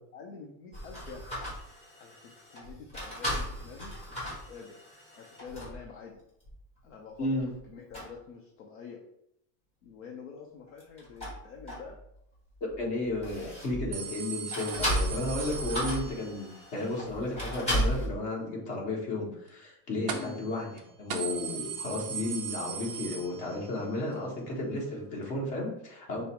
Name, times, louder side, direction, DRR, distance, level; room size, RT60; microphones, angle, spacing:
voice 1, 0.1-1.2 2.0-4.2 4.5-4.8 5.2-6.2 6.8-9.0 9.8-12.0 20.0-20.4, left 5 dB, 55° left, 0 dB, 0.7 m, -47 dB
sound 1, 0.7-5.9 6.4-6.6 7.2-7.6 7.9-8.1 10.7-12.2 12.5-14.0 14.5-18.1, equal, 10° left, 1.1 m, -35 dB
voice 2, 12.6-20.7 21.0-26.2, left 2 dB, 35° left, -3 dB, 1.3 m, -33 dB
sound 2, 13.9-16.6 20.1-20.5 20.8-20.9 21.1-23.8 24.2-24.3 25.3-25.4, right 7 dB, 40° right, 0.4 m, -38 dB
5.3 x 2.1 x 4.4 m, 0.77 s
supercardioid pair, 180°, 48 cm